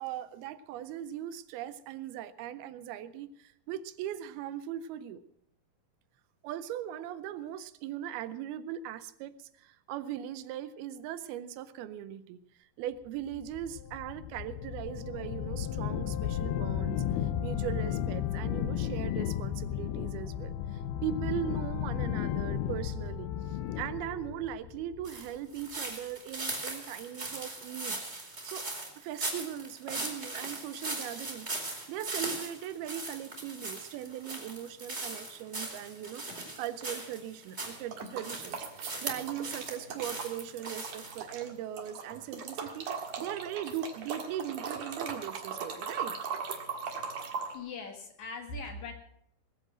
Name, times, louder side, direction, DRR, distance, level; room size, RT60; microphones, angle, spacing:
voice 1, 0.0-5.2 6.4-28.7 29.0-31.5 31.9-42.9 43.2-46.1, right 10 dB, 85° right, 14 dB, 2.6 m, -39 dB
sound 1, 13.3-25.4, left 10 dB, 85° left, 2.9 m, -34 dB
sound 2, 25.0-37.8 38.2-39.7 40.0-41.2, right 2 dB, 20° right, 3.0 m, -39 dB
sound 3, 37.6-41.5 41.8-47.6, right 6 dB, 55° right, 2.4 m, -39 dB
voice 2, 47.5-48.9, left 3 dB, 55° left, 4 dB, 2.7 m, -40 dB
19.5 x 8.0 x 7.5 m, 0.70 s
omnidirectional pair, 4.4 m